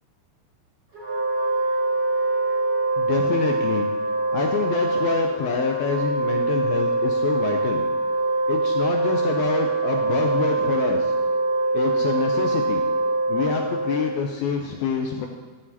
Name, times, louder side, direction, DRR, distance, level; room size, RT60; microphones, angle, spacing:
Wind instrument woodwind instrument, 0.9-14.3, right 2 dB, 35° right, 2.2 m, -23 dB
voice 1, 3.0-3.9 4.3-7.8 8.5-11.1 11.7-12.8 13.3-15.3, left 6 dB, 85° left, 3 dB, 2.2 m, -27 dB
14.0 x 7.3 x 2.8 m, 1.4 s
omnidirectional pair, 4.8 m